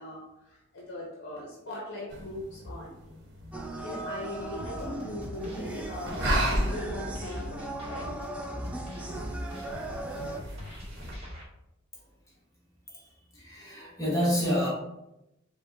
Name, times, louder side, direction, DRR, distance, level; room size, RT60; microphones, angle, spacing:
voice 1, 0.0-2.9 3.8-8.1, left 1 dB, 55° left, -2 dB, 0.8 m, -40 dB
sound 1, 2.1-11.2, right 1 dB, 55° right, 1.0 m, -36 dB
sound 2, 3.5-10.4, right 1 dB, 5° right, 0.4 m, -37 dB
sound 3, 4.6-11.4, left 1 dB, 30° right, 1.2 m, -44 dB
voice 2, 13.4-14.7, equal, 15° left, -5 dB, 1.1 m, -28 dB
5.1 x 2.2 x 3.8 m, 0.87 s
head